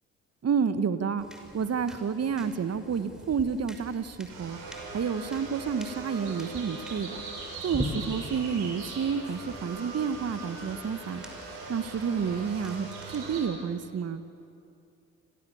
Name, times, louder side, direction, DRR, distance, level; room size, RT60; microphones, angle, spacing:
voice 1, 0.4-1.2 1.5-4.6 4.9-7.2 7.6-11.2 11.7-14.2, right 6 dB, 35° right, 11 dB, 1.5 m, -30 dB
sound 1, 1.2-13.2, equal, ahead, 5.9 m, -44 dB
sound 2, 4.3-13.4, right 3 dB, 60° right, 7.5 m, -40 dB
30.0 x 25.0 x 7.2 m, 2.6 s
figure-of-eight pair, 50°, 43 cm